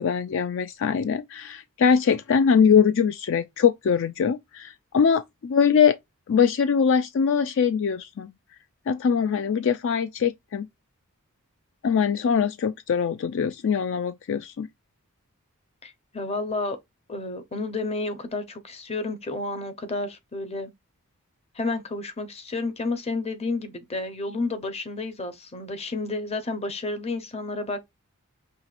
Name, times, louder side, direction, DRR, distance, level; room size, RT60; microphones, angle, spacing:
voice 1, 0.0-6.0 6.3-8.3 8.9-10.7 11.8-14.7, left 6 dB, 60° left, 0.4 m, -22 dB
voice 2, 15.8-16.8 17.1-20.7 21.5-27.8, left 3 dB, 30° left, 0.8 m, -31 dB
5.7 x 2.9 x 2.5 m
head